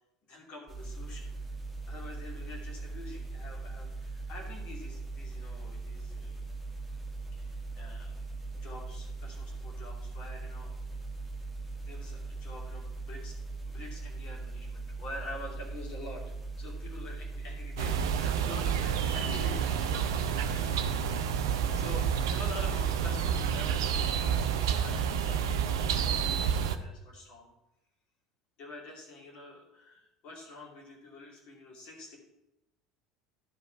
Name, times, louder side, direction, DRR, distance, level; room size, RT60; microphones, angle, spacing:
voice 1, 0.3-1.3 1.9-6.4 7.3-8.1 8.5-10.7 11.8-13.4 13.7-16.2 16.6-21.4 21.7-27.5 28.6-32.2, left 1 dB, 45° left, -1 dB, 2.7 m, -47 dB
sound 1, 0.7-18.7, right 3 dB, ahead, 2.2 m, -40 dB
sound 2, 17.8-26.8, right 7 dB, 65° right, 0.6 m, -29 dB
11.0 x 5.1 x 5.8 m, 0.92 s
figure-of-eight pair, 70°, 2 cm